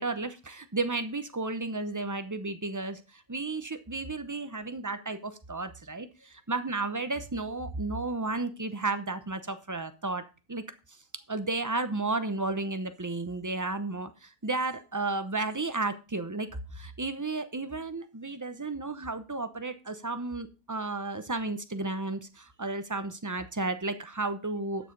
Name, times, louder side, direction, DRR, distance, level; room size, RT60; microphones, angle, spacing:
voice 1, 0.0-10.2 10.5-10.6 11.3-24.9, right 3 dB, 20° right, 10 dB, 0.5 m, -33 dB
12.0 x 6.7 x 5.2 m, 0.32 s
omnidirectional pair, 1.6 m